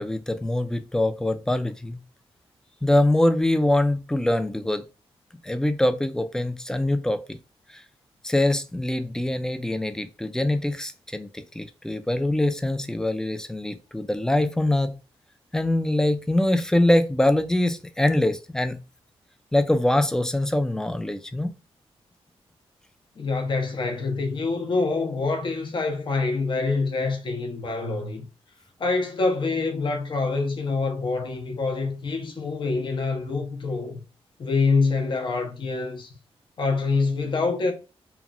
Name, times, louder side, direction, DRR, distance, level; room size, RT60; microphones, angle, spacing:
voice 1, 0.0-2.0 2.8-4.8 5.4-7.4 7.7-7.8 8.2-15.0 15.5-18.8 19.5-21.5, left 1 dB, 5° left, 0.3 m, -23 dB
voice 2, 23.2-28.3 28.8-34.0 34.4-36.1 36.6-37.7, left 3 dB, 50° left, 0.6 m, -26 dB
2.9 x 2.2 x 2.4 m
cardioid pair, 80°, 10 cm